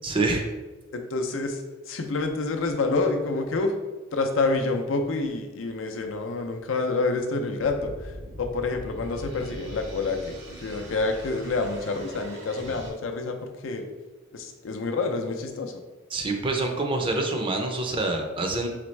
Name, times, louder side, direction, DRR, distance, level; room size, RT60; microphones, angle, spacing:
voice 1, 0.0-0.4 16.1-18.7, right 2 dB, 25° right, 3 dB, 0.5 m, -26 dB
voice 2, 0.9-1.6 1.9-3.7 4.1-8.1 8.4-13.4 13.6-13.8 14.3-15.8, left 3 dB, 70° left, 4 dB, 0.5 m, -28 dB
sound 1, 7.6-12.9, right 1 dB, 60° right, 0.8 m, -41 dB
4.1 x 3.4 x 3.2 m, 1.2 s
head